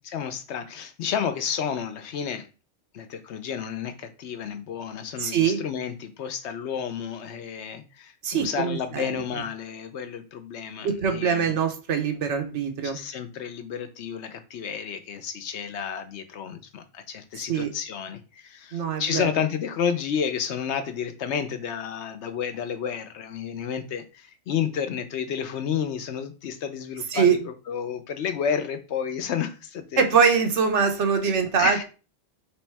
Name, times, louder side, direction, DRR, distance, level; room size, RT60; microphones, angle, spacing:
voice 1, 0.0-2.5 2.9-11.6 12.8-30.0 31.6-31.8, left 7 dB, 70° left, 0.9 m, -31 dB
voice 2, 5.2-5.6 8.2-9.2 10.8-13.0 17.3-17.7 18.7-19.3 27.1-27.4 30.0-31.8, right 6 dB, 75° right, 1.2 m, -23 dB
3.4 x 3.1 x 4.5 m
omnidirectional pair, 1.2 m